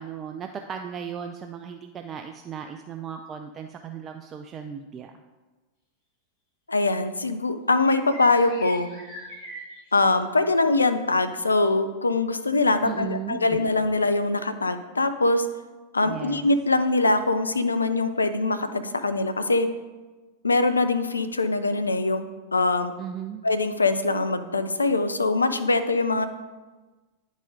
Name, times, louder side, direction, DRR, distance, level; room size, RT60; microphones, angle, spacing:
voice 1, 0.0-5.1 12.8-13.4 16.0-16.5 23.0-23.4, right 8 dB, 25° right, 5 dB, 0.4 m, -36 dB
voice 2, 6.7-8.9 9.9-15.5 15.9-19.7 20.4-22.3 22.5-22.9 23.4-26.3, left 3 dB, 80° left, 10 dB, 0.4 m, -23 dB
sound 1, 7.8-10.1 11.5-11.7, right 1 dB, 45° left, 2.2 m, -41 dB
9.6 x 4.1 x 3.7 m, 1.2 s
figure-of-eight pair, 90°, 0 cm